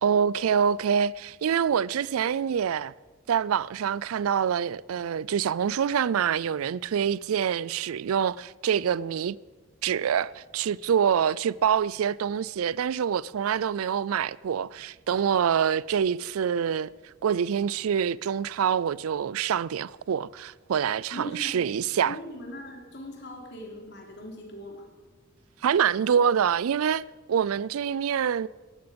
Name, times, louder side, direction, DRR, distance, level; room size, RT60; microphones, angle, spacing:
voice 1, 0.0-2.9 3.3-9.4 9.8-16.9 17.2-22.2 25.6-27.0 27.3-28.5, right 8 dB, 90° right, 0.4 m, -26 dB
voice 2, 21.1-21.8 22.0-24.9, equal, 55° left, 3.3 m, -40 dB
18.5 x 14.0 x 5.2 m
head